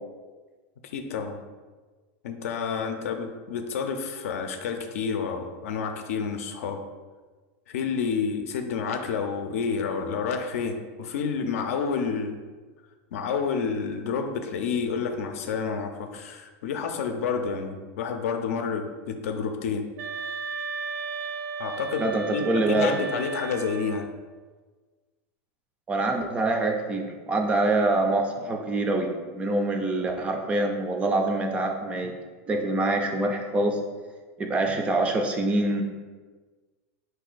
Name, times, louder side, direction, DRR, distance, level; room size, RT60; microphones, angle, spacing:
voice 1, 0.8-1.4 2.2-6.8 7.7-12.4 13.1-19.9 21.6-24.1, left 5 dB, 75° left, 6 dB, 0.5 m, -29 dB
sound 1, 20.0-24.1, right 4 dB, 85° right, 0.6 m, -34 dB
voice 2, 22.0-23.1 25.9-32.1 32.5-33.8 34.4-35.8, right 2 dB, 15° right, 3 dB, 0.4 m, -25 dB
4.5 x 2.7 x 3.9 m, 1.4 s
supercardioid pair, 160°, 8 cm